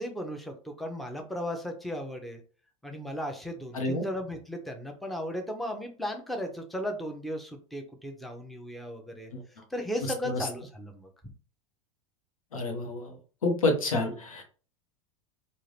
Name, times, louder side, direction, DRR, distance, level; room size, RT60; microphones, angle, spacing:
voice 1, 0.0-2.4 2.8-9.3 9.7-11.1, equal, ahead, 3 dB, 0.7 m, -36 dB
voice 2, 3.7-4.0 10.2-10.4 12.5-13.1 13.4-14.4, left 2 dB, 75° left, 3 dB, 1.1 m, -28 dB
3.7 x 2.5 x 3.2 m, 0.39 s
figure-of-eight pair, 85°, 17 cm